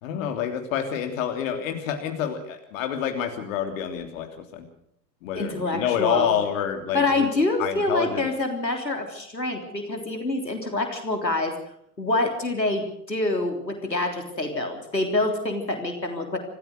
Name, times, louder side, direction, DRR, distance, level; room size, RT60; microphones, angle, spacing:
voice 1, 0.0-4.3 4.5-4.7 5.2-7.3 7.6-8.3, left 8 dB, 50° left, 5 dB, 3.2 m, -28 dB
voice 2, 5.3-6.3 6.9-11.5 12.0-16.4, left 2 dB, 85° left, 4 dB, 3.6 m, -26 dB
26.0 x 15.5 x 6.5 m, 0.71 s
figure-of-eight pair, 95°, 49 cm